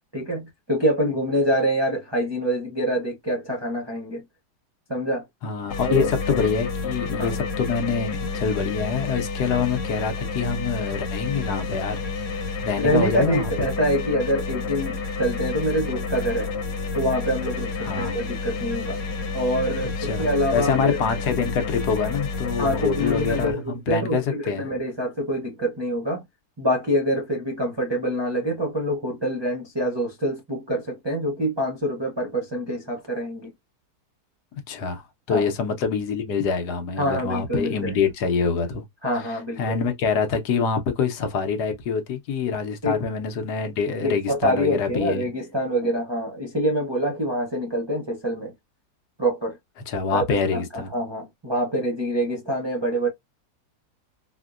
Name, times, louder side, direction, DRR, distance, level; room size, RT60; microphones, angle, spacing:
voice 1, 0.1-4.2 4.9-5.2 5.9-6.1 7.2-7.4 12.8-16.5 16.9-19.0 19.3-21.0 22.6-26.2 26.6-33.5 35.3-35.5 37.0-37.9 39.0-39.8 42.8-43.0 44.0-48.5 49.2-49.6 50.1-53.1, equal, 45° right, 0.3 m, -25 dB
voice 2, 5.4-12.0 12.4-13.7 17.8-18.1 20.0-24.7 34.7-38.8 39.6-45.3 49.9-50.9, left 5 dB, 70° left, 1.3 m, -25 dB
sound 1, 5.7-23.5, left 4 dB, 90° left, 1.6 m, -30 dB
4.3 x 2.1 x 2.4 m
omnidirectional pair, 1.8 m